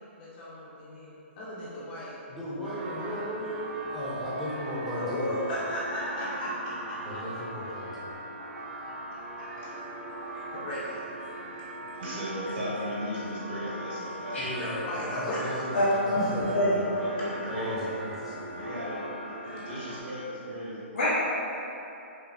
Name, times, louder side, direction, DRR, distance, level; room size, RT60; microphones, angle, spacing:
voice 1, 0.0-2.1 2.6-3.3 4.9-7.2 8.9-9.5 10.3-11.0 14.0-14.3 14.6-15.7 17.2-17.3, left 1 dB, 40° left, -9 dB, 0.9 m, -36 dB
voice 2, 2.3-5.3 7.0-8.1 14.3-17.0 17.5-18.6, equal, 5° right, -10 dB, 0.8 m, -36 dB
sound 1, 2.6-20.0, right 1 dB, 20° right, 0.4 m, -40 dB
voice 3, 12.0-14.5 16.7-17.9 18.5-20.8, equal, 55° right, -8 dB, 1.5 m, -36 dB
voice 4, 15.7-16.2 16.5-16.7 20.9-21.1, left 1 dB, 75° left, -12 dB, 1.1 m, -25 dB
5.5 x 2.0 x 2.6 m, 2.9 s
hypercardioid pair, 145°, 7 cm